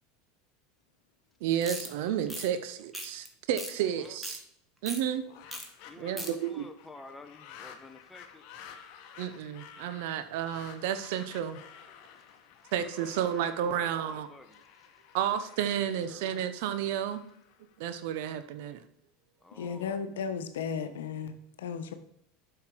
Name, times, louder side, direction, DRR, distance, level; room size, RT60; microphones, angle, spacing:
voice 1, 1.4-4.4 4.8-5.3 6.0-6.7 9.2-11.6 12.7-14.3 15.1-17.2 17.8-18.8, right 9 dB, 70° right, 11 dB, 0.8 m, -31 dB
sound 1, 1.6-1.9 2.3-2.5 2.9-3.3 3.6-3.7 4.0-4.4 4.9-5.0 5.5-5.7 5.9-6.3, equal, 5° right, 1.7 m, -38 dB
voice 2, 3.9-4.2 5.8-8.4 12.9-14.6 15.0-15.1 15.8-16.5 19.4-19.9, left 2 dB, 10° left, 6 dB, 1.1 m, -51 dB
sound 2, 5.0-18.2, left 8 dB, 60° left, 1.2 m, -52 dB
voice 3, 19.5-21.9, left 6 dB, 90° left, 9 dB, 0.9 m, -35 dB
7.8 x 5.8 x 4.6 m, 0.73 s
supercardioid pair, 105°, 0 cm